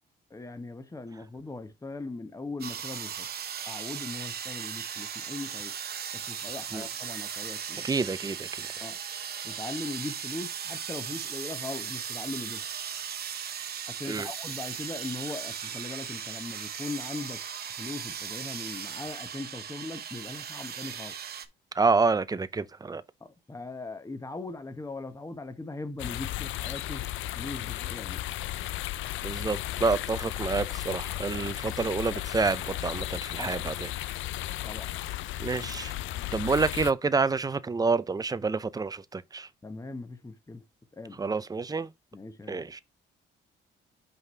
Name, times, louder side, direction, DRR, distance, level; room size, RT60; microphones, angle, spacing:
voice 1, 0.3-3.3 3.7-5.7 6.1-7.9 8.8-9.0 9.4-12.6 13.9-17.4 17.8-21.1 23.2-27.1 27.3-28.2 33.4-33.5 34.6-34.9 39.6-40.6 40.9-41.2 42.1-42.7, left 3 dB, 15° left, 1.1 m, -39 dB
sound 1, 2.6-21.5, right 8 dB, 50° right, 0.9 m, -37 dB
voice 2, 7.8-8.7 14.1-14.3 21.7-23.0 29.2-33.9 35.4-35.9 36.3-39.5 41.2-41.9 42.5-42.8, right 4 dB, 20° right, 0.6 m, -28 dB
sound 2, 26.0-36.9, left 15 dB, 75° left, 0.5 m, -35 dB
5.7 x 4.0 x 4.6 m
cardioid pair, 90°, 20 cm